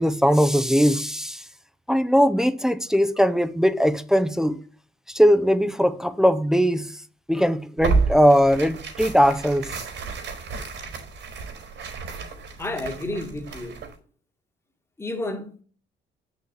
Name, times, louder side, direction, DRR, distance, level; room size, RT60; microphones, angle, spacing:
voice 1, 0.0-1.4 1.9-4.6 5.1-6.9 7.3-9.7, equal, 5° right, 0.5 m, -20 dB
Tearing, 7.8-14.0, right 4 dB, 80° right, 3.7 m, -30 dB
voice 2, 12.6-13.8 15.0-15.5, left 2 dB, 15° left, 1.3 m, -30 dB
7.0 x 6.4 x 3.2 m
cardioid pair, 90°, 20 cm